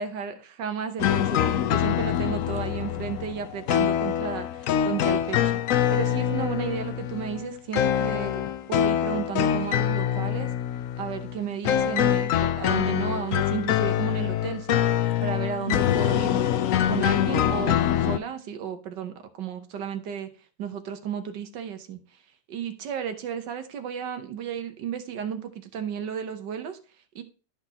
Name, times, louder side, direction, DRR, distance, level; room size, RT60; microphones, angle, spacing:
voice 1, 0.0-5.4 5.9-10.5 11.0-14.8 15.2-16.4 16.8-20.3 20.6-22.0 22.5-26.8 27.2-27.3, right 7 dB, 85° right, 8 dB, 1.6 m, -33 dB
sound 1, 1.0-18.2, left 10 dB, 70° left, 0.8 m, -25 dB
12.0 x 6.1 x 2.9 m, 0.37 s
omnidirectional pair, 1.9 m